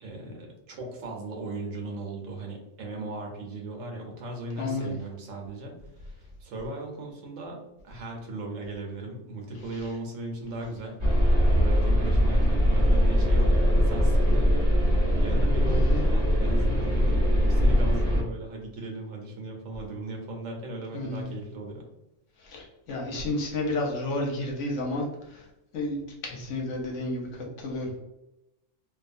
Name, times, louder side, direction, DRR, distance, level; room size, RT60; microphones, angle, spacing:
voice 1, 0.0-7.6 7.8-14.7 15.2-21.9, right 2 dB, 85° right, 1 dB, 1.1 m, -37 dB
voice 2, 4.6-4.9 9.7-9.9 15.7-16.0 20.9-21.3 22.4-25.5 25.7-28.0, left 2 dB, 75° left, -2 dB, 1.1 m, -31 dB
sound 1, 11.0-18.2, equal, 25° right, 1.1 m, -21 dB
2.6 x 2.3 x 2.5 m, 0.91 s
omnidirectional pair, 1.3 m